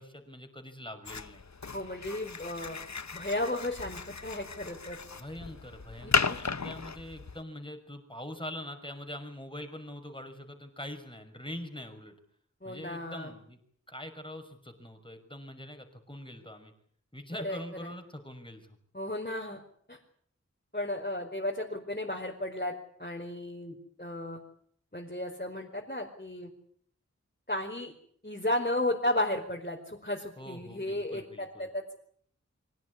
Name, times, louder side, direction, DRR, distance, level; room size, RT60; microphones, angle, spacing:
voice 1, 0.0-1.4 5.2-12.1 12.6-13.6 13.9-16.7 17.1-18.7 30.4-31.7, left 1 dB, 15° left, 6 dB, 5.9 m, -43 dB
sound 1, 1.1-7.4, left 4 dB, 70° left, 0.9 m, -35 dB
voice 2, 1.7-2.8 3.1-5.0 6.0-6.4 12.6-13.3 17.4-17.9 18.9-19.6 19.9-20.0 20.7-22.7 23.0-24.4 24.9-26.5 27.5-27.9 28.2-31.9, left 1 dB, 35° left, -1 dB, 5.0 m, -34 dB
25.0 x 18.0 x 9.7 m, 0.63 s
wide cardioid pair, 45°, 29 cm